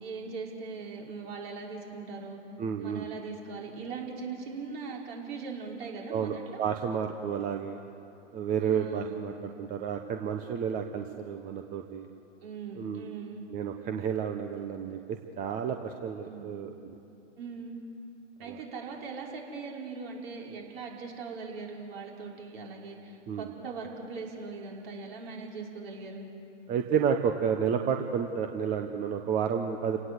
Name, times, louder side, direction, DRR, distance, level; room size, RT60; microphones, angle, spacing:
voice 1, 0.0-2.4 2.8-6.6 8.6-9.3 12.4-13.4 16.2-16.6 17.4-17.8 18.4-26.3, right 4 dB, 50° right, -1 dB, 5.7 m, -40 dB
voice 2, 2.6-3.1 6.1-7.8 8.3-12.1 12.8-13.1 13.5-16.9 18.5-18.6 23.3-23.5 26.7-30.0, right 7 dB, 20° right, 5 dB, 1.1 m, -31 dB
29.5 x 18.0 x 8.1 m, 2.8 s
hypercardioid pair, 125°, 37 cm